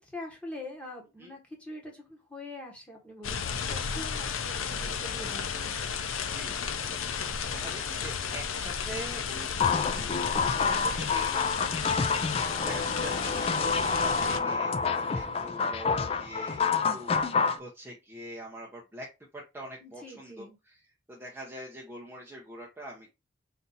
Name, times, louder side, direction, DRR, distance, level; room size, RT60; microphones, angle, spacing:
voice 1, 0.0-5.6 7.4-8.0 15.0-15.4 19.8-20.6, left 1 dB, 5° left, -1 dB, 1.2 m, -44 dB
sound 1, 3.2-14.4, left 6 dB, 85° left, 0.6 m, -33 dB
voice 2, 6.1-9.6 10.0-16.6 16.9-19.1 19.3-20.8 21.1-23.1, right 1 dB, 10° right, -4 dB, 0.8 m, -44 dB
sound 2, 9.6-17.6, left 5 dB, 30° left, 0.3 m, -28 dB
4.1 x 2.7 x 3.9 m, 0.25 s
head